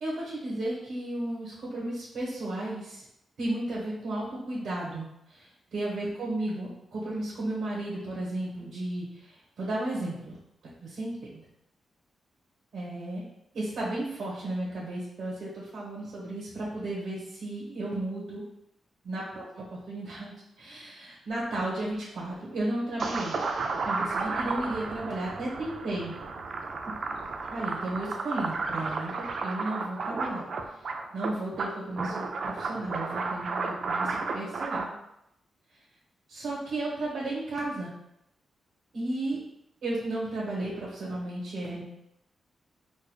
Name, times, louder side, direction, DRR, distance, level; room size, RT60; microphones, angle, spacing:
voice 1, 0.0-3.0 3.4-10.4 10.8-11.4 12.7-13.2 13.5-18.4 19.0-23.4 23.8-26.1 27.5-30.4 31.1-34.9 36.3-37.9 38.9-39.4 39.8-41.8, right 1 dB, 85° right, -7 dB, 1.1 m, -34 dB
sound 1, 23.0-34.8, right 3 dB, 50° right, 0.3 m, -33 dB
4.6 x 2.5 x 2.3 m, 0.82 s
wide cardioid pair, 165°, 0 cm